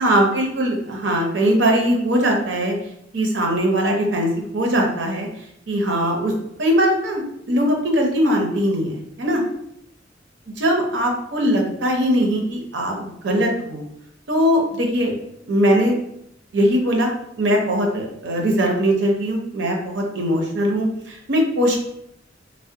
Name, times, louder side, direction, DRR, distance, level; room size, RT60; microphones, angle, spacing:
voice 1, 0.0-2.8 3.1-5.3 5.7-6.3 6.6-9.4 10.6-13.8 14.3-15.1 15.5-16.0 16.5-17.1 17.4-21.8, equal, 70° right, 1 dB, 0.7 m, -20 dB
3.3 x 2.1 x 2.7 m, 0.75 s
head